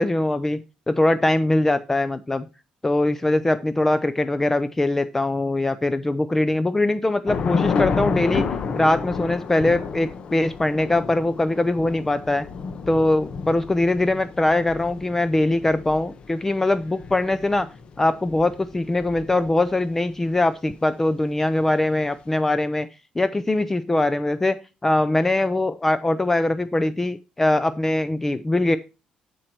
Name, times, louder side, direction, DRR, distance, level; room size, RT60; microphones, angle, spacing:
voice 1, 0.0-2.5 2.8-8.5 8.8-12.4 12.9-17.7 18.0-22.9 23.2-28.8, left 2 dB, 15° left, 12 dB, 0.5 m, -22 dB
Thunder / Rain, 7.3-19.8, left 5 dB, 45° left, 1.0 m, -30 dB
12.0 x 4.6 x 4.3 m, 0.30 s
cardioid pair, 120°, 2 cm